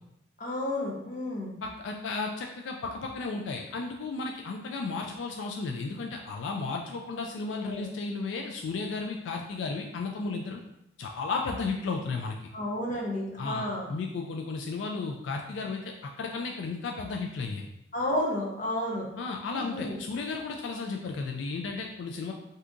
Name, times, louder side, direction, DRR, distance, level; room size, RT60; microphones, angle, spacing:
voice 1, 0.4-1.6 7.1-7.3 7.6-7.9 12.5-13.9 17.9-19.1 19.5-20.0, left 1 dB, 45° left, -1 dB, 0.7 m, -31 dB
voice 2, 1.6-10.6 11.0-12.4 13.4-17.6 19.2-22.3, left 4 dB, 80° left, 2 dB, 0.3 m, -34 dB
2.7 x 2.4 x 3.5 m, 0.81 s
head